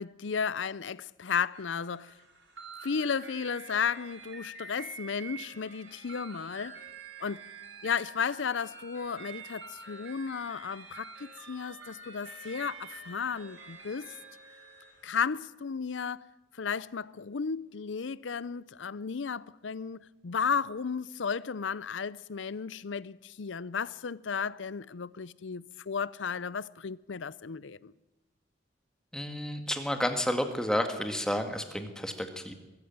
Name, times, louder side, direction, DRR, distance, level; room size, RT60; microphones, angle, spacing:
voice 1, 0.0-2.1 2.8-6.8 7.2-7.5 7.8-14.1 15.0-16.3 16.6-27.9, left 6 dB, 80° left, 0.6 m, -34 dB
sound 1, 1.5-15.0, right 4 dB, 75° right, 4.2 m, -47 dB
voice 2, 29.1-32.5, equal, 5° left, 1.9 m, -31 dB
22.0 x 14.0 x 8.9 m
head